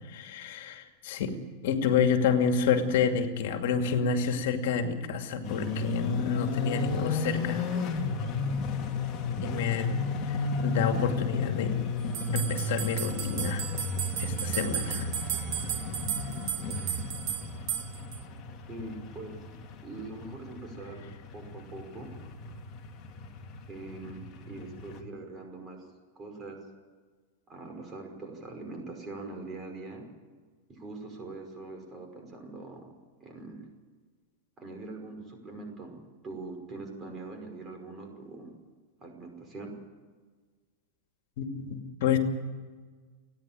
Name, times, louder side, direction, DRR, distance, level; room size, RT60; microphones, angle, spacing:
voice 1, 0.0-1.3 1.6-7.6 9.4-10.0 10.3-11.8 12.3-13.6 14.2-15.1 41.4-42.2, left 6 dB, 65° left, 5 dB, 2.4 m, -29 dB
sound 1, 5.4-25.0, left 4 dB, 30° left, 2.6 m, -34 dB
sound 2, 12.1-18.2, right 12 dB, 45° right, 1.1 m, -35 dB
voice 2, 18.7-19.4 19.8-22.1 23.7-25.8 26.2-26.6 27.5-30.1 30.7-32.9 33.2-33.7 34.6-38.5 39.0-39.7, right 2 dB, 20° right, 3 dB, 5.5 m, -42 dB
30.0 x 10.5 x 9.1 m, 1.5 s
supercardioid pair, 145°, 0 cm